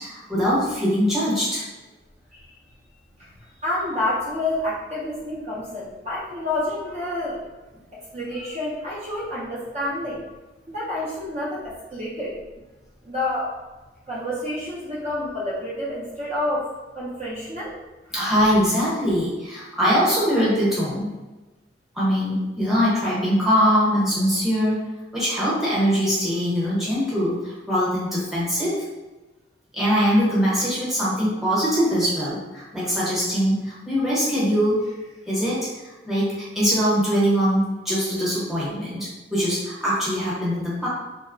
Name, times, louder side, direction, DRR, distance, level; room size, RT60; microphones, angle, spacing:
voice 1, 0.0-1.6 18.1-21.1 21.9-24.8 25.1-28.8 29.7-34.9 35.3-35.6 36.1-40.9, equal, ahead, -9 dB, 0.8 m, -22 dB
voice 2, 3.6-7.4 8.1-10.2 10.7-12.3 13.0-13.5 14.1-17.7, left 1 dB, 35° right, -7 dB, 0.4 m, -28 dB
2.7 x 2.0 x 2.5 m, 1.1 s
head